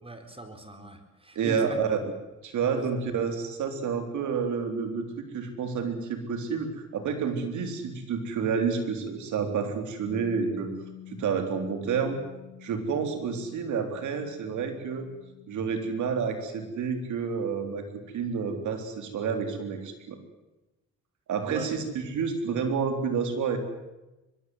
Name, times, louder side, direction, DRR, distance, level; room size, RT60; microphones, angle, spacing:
voice 1, 0.0-1.8 2.7-2.9 21.5-21.7, right 1 dB, 20° right, 8 dB, 4.3 m, -40 dB
voice 2, 1.4-2.1 2.4-10.7 11.1-12.2 12.6-15.1 15.5-17.9 18.1-20.2 21.3-23.6, right 6 dB, 75° right, 6 dB, 4.3 m, -29 dB
Bass guitar, 10.1-16.3, left 11 dB, 45° left, 6.0 m, -48 dB
23.0 x 22.5 x 8.2 m, 1.0 s
cardioid pair, 90°, 30 cm